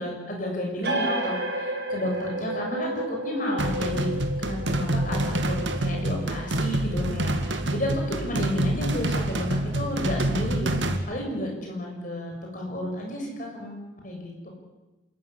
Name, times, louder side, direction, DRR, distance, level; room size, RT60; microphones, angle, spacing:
voice 1, 0.0-4.1 4.4-14.5, left 1 dB, 40° left, 0 dB, 6.9 m, -32 dB
sound 1, 0.8-8.0, right 1 dB, 60° right, 5.2 m, -33 dB
sound 2, 3.6-11.0, right 1 dB, 75° right, 2.2 m, -27 dB
27.5 x 14.0 x 9.9 m, 1.1 s
head